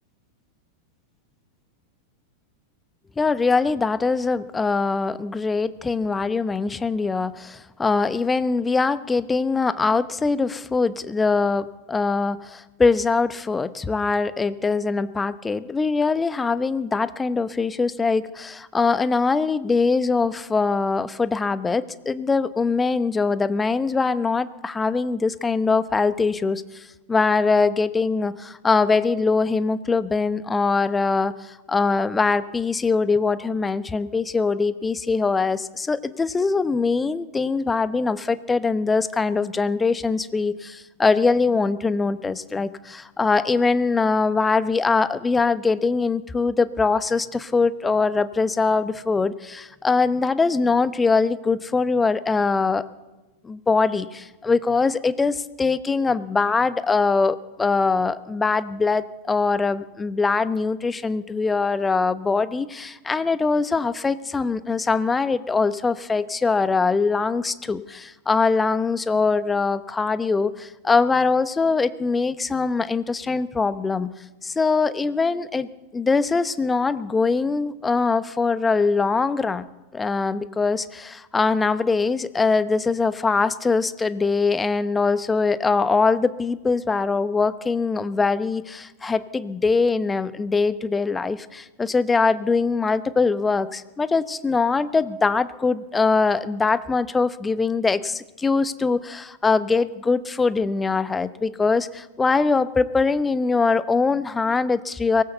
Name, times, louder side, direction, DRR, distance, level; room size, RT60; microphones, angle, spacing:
voice 1, 3.2-52.8 53.4-74.1 74.4-79.6 79.9-105.2, left 4 dB, 15° left, 14 dB, 1.0 m, -22 dB
23.0 x 19.0 x 6.9 m, 1.1 s
figure-of-eight pair, 90°, 0 cm